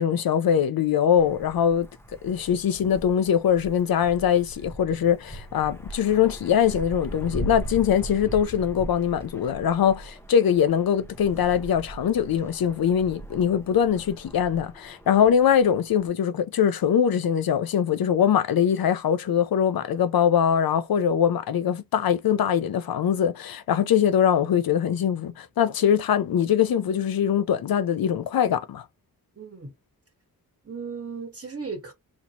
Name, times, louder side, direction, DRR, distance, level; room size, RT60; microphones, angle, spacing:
voice 1, 0.0-1.9 2.2-28.8, left 8 dB, 80° left, 0.6 m, -22 dB
Wind, 1.2-16.1, right 1 dB, 5° left, 0.6 m, -40 dB
voice 2, 29.4-29.7 30.6-31.9, right 5 dB, 40° right, 1.2 m, -36 dB
4.1 x 2.8 x 2.9 m
wide cardioid pair, 105°, 35 cm